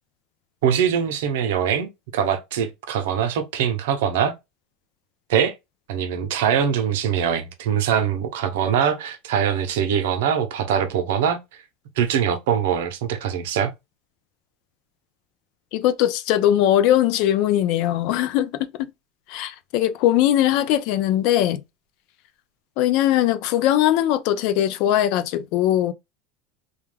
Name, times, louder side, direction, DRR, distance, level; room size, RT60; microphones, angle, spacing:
voice 1, 0.6-4.3 5.3-5.5 5.9-11.6 12.0-13.7, right 8 dB, 80° right, 0.6 m, -23 dB
voice 2, 15.7-18.9 19.3-21.6 22.8-25.9, left 12 dB, 60° left, 0.4 m, -20 dB
2.3 x 2.2 x 3.2 m
supercardioid pair, 125°, 0 cm